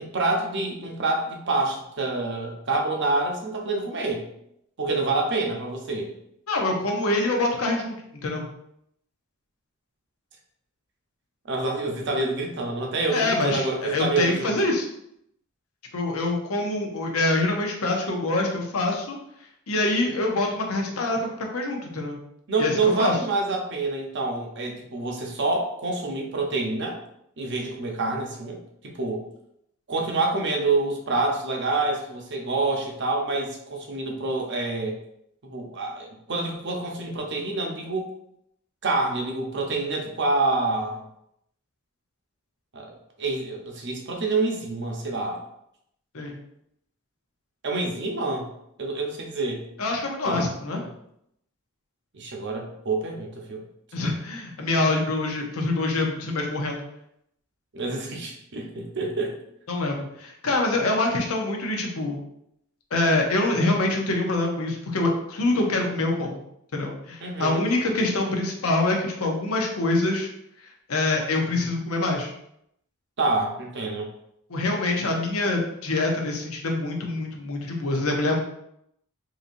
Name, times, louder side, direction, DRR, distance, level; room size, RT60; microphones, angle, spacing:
voice 1, 0.0-4.3 4.8-6.1 11.5-14.5 22.5-27.0 27.4-29.2 29.9-35.0 35.4-38.1 38.8-41.0 42.7-42.9 43.2-45.4 47.6-48.5 48.8-49.6 50.2-50.4 50.7-50.9 52.1-53.6 57.7-59.4 67.2-67.6 73.2-74.1, right 3 dB, 55° right, 1 dB, 0.7 m, -27 dB
voice 2, 6.5-8.5 13.1-14.9 15.9-19.2 19.7-22.2 22.6-23.1 46.1-46.4 49.8-50.8 53.9-56.8 59.7-62.2 62.9-66.4 66.7-70.3 70.9-72.3 74.5-78.4, left 2 dB, 75° left, 1 dB, 0.7 m, -25 dB
3.9 x 2.8 x 2.6 m, 0.76 s
head